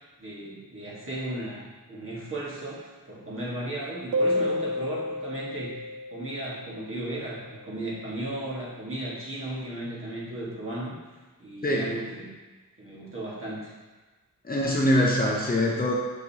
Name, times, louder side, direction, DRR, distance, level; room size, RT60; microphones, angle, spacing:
voice 1, 0.2-5.8 6.1-10.9 11.4-12.3 12.8-13.7, right 1 dB, 40° right, -6 dB, 1.8 m, -35 dB
sound 1, 4.1-7.4, left 1 dB, 75° right, 0.6 m, -30 dB
voice 2, 14.4-16.0, left 1 dB, 25° left, -3 dB, 0.7 m, -23 dB
6.5 x 6.4 x 2.9 m, 1.2 s
wide cardioid pair, 170°, 34 cm